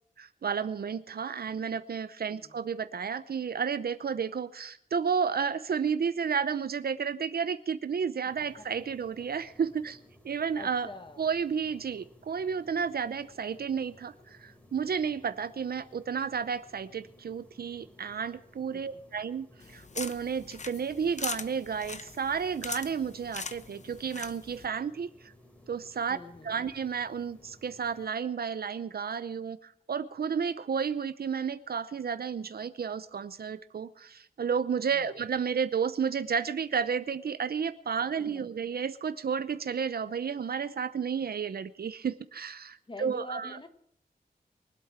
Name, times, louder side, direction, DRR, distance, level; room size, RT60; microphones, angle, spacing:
voice 1, 0.2-10.0 10.2-10.9 11.2-25.3 25.7-26.2 26.4-43.6, right 6 dB, 75° right, 13 dB, 0.7 m, -32 dB
voice 2, 2.3-2.7 10.5-11.3 18.7-18.8 26.1-26.6 34.9-35.1 42.9-43.7, left 2 dB, 30° left, 9 dB, 1.4 m, -45 dB
sound 1, 8.3-28.1, left 1 dB, 10° left, 3.3 m, -58 dB
sound 2, 19.6-24.7, left 4 dB, 50° left, 0.8 m, -41 dB
23.5 x 8.4 x 5.9 m, 0.69 s
wide cardioid pair, 115°, 16 cm